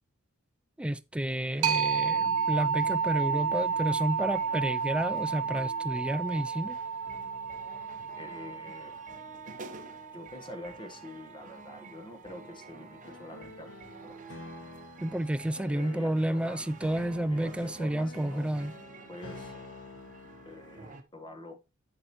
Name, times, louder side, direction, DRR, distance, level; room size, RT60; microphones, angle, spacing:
voice 1, 0.8-6.8 15.0-18.7, right 1 dB, 5° right, 0.3 m, -31 dB
sound 1, 1.3-21.0, right 4 dB, 35° right, 0.8 m, -50 dB
sound 2, 1.6-11.0, right 6 dB, 65° right, 0.5 m, -31 dB
sound 3, 5.7-5.8 7.1-10.3 13.0-20.9, left 3 dB, 60° left, 1.8 m, -50 dB
voice 2, 8.2-8.9 10.1-13.7 14.0-14.1 15.7-16.7 17.3-18.5 19.1-19.5 20.4-21.6, left 1 dB, 20° left, 1.2 m, -45 dB
8.0 x 7.4 x 3.0 m
head